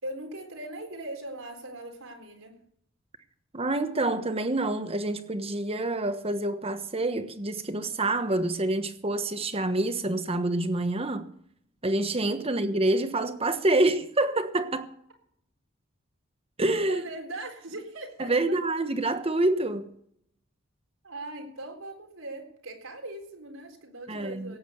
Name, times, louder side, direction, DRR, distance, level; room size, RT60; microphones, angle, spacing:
voice 1, 0.0-2.6 12.2-12.3 16.9-18.3 21.0-24.6, right 1 dB, 90° right, 4.0 m, -40 dB
voice 2, 3.5-11.3 11.8-14.9 16.6-17.1 18.2-19.9 24.1-24.5, right 2 dB, 30° right, 1.2 m, -27 dB
17.0 x 8.7 x 7.0 m
head